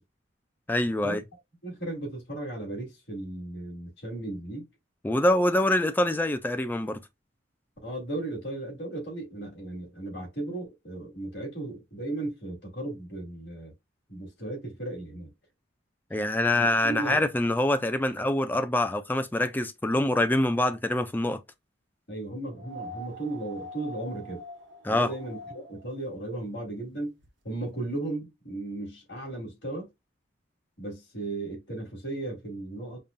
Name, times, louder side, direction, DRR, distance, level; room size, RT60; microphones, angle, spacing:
voice 1, 0.7-1.2 5.0-7.0 16.1-21.4 24.8-25.1, left 1 dB, 10° left, 0.4 m, -25 dB
voice 2, 1.6-4.7 7.8-13.7 14.1-15.3 16.5-17.2 22.1-24.4 24.9-27.2 27.4-29.9 30.8-33.0, right 2 dB, 65° left, 2.6 m, -36 dB
sound 1, 22.6-25.8 27.2-27.3, equal, 70° right, 0.9 m, -43 dB
5.4 x 2.6 x 2.2 m
head